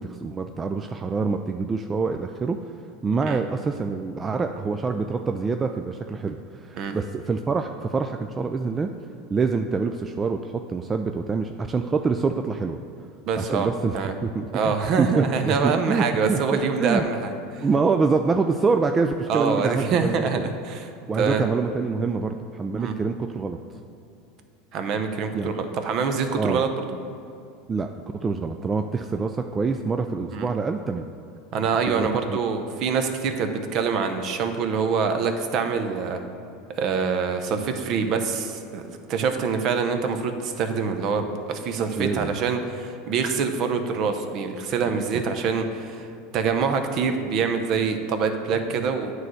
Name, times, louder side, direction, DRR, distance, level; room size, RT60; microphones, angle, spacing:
voice 1, 0.0-2.6 3.0-8.9 9.3-12.8 13.4-16.4 16.8-17.1 17.6-20.5 21.1-23.6 25.3-25.5 26.4-26.6 27.7-27.9 28.1-31.0 31.9-32.4 42.0-42.3 45.1-45.2, right 4 dB, 25° right, 6 dB, 0.3 m, -26 dB
voice 2, 13.3-13.7 13.9-14.1 14.5-17.6 19.3-20.9 21.2-21.4 22.8-22.9 24.7-26.9 30.3-30.5 31.5-36.2 36.8-38.8 39.1-46.1 46.3-49.1, right 5 dB, 50° right, 7 dB, 0.7 m, -25 dB
9.1 x 3.2 x 6.1 m, 2.6 s
supercardioid pair, 105°, 0 cm